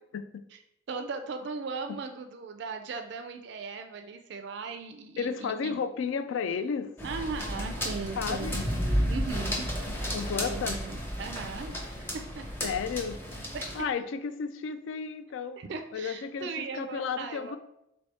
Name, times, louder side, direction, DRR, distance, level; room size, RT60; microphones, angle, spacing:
voice 1, 0.9-5.8 7.0-9.7 10.4-11.9 12.1-12.4 13.5-13.7 15.6-17.6, right 4 dB, 55° right, 6 dB, 0.3 m, -38 dB
voice 2, 5.2-6.9 8.2-8.6 10.1-10.8 12.6-13.2 13.7-15.6 15.9-17.6, left 6 dB, 70° left, 12 dB, 0.3 m, -33 dB
sound 1, 7.0-13.8, equal, 10° left, 0.6 m, -32 dB
3.4 x 3.1 x 4.1 m, 0.82 s
head